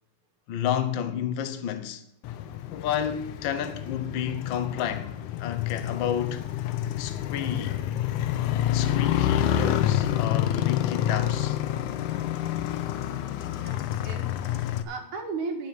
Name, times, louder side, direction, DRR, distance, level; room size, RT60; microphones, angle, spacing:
voice 1, 0.5-2.0 2.7-6.5 7.0-7.8 8.7-11.6 13.4-13.5, left 9 dB, 70° left, 1.1 m, -31 dB
Motorcycle, 2.2-14.8, left 11 dB, 90° left, 2.2 m, -28 dB
voice 2, 13.5-15.7, right 4 dB, 85° right, 3.2 m, -36 dB
9.8 x 7.5 x 9.1 m
omnidirectional pair, 3.4 m